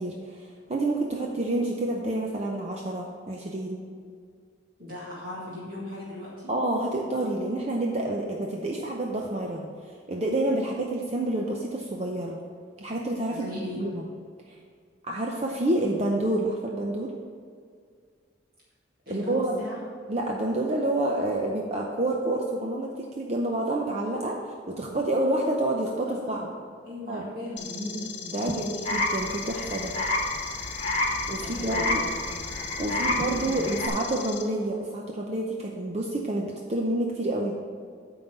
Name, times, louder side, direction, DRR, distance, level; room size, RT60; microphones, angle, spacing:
voice 1, 0.0-3.8 6.5-9.7 10.1-12.4 12.8-14.0 15.0-17.1 19.1-19.5 20.1-24.4 24.7-26.4 27.1-27.3 28.3-29.9 31.3-32.0 32.8-37.6, right 1 dB, 35° right, -1 dB, 0.6 m, -28 dB
voice 2, 4.8-6.5 13.3-13.8 19.1-19.8 26.0-26.5 26.8-28.1 28.4-28.7 31.4-33.7, left 1 dB, 50° right, -7 dB, 1.9 m, -38 dB
sound 1, 27.6-34.4, left 7 dB, 65° left, 0.9 m, -39 dB
sound 2, 28.8-33.9, left 1 dB, 35° left, 1.2 m, -29 dB
9.3 x 3.9 x 7.0 m, 2.1 s
head